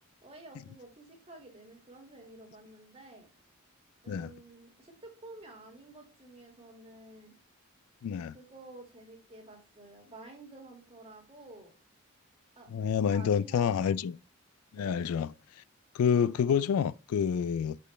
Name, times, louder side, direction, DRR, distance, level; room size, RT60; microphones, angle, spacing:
voice 1, 0.2-3.3 4.0-7.4 8.3-11.7 12.6-13.9 14.8-15.1, right 2 dB, 25° right, 1.9 m, -51 dB
voice 2, 8.0-8.3 12.7-14.2 14.7-15.3 15.9-17.8, left 7 dB, 80° left, 0.3 m, -28 dB
6.4 x 5.2 x 3.2 m
head